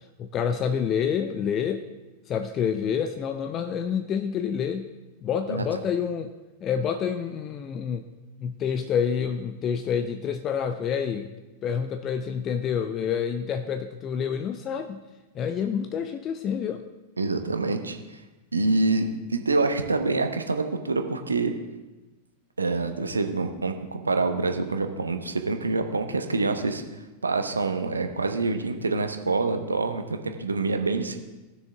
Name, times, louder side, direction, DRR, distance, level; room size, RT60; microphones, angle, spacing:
voice 1, 0.0-1.9 2.3-4.9 5.2-6.3 6.6-8.1 8.4-11.3 11.6-15.0 15.3-16.8, left 7 dB, 30° left, 8 dB, 0.5 m, -28 dB
voice 2, 17.2-18.0 18.5-21.5 22.6-26.8 27.2-31.2, right 3 dB, 75° right, 6 dB, 0.9 m, -26 dB
18.0 x 6.4 x 3.6 m, 1.1 s
figure-of-eight pair, 90°, 0 cm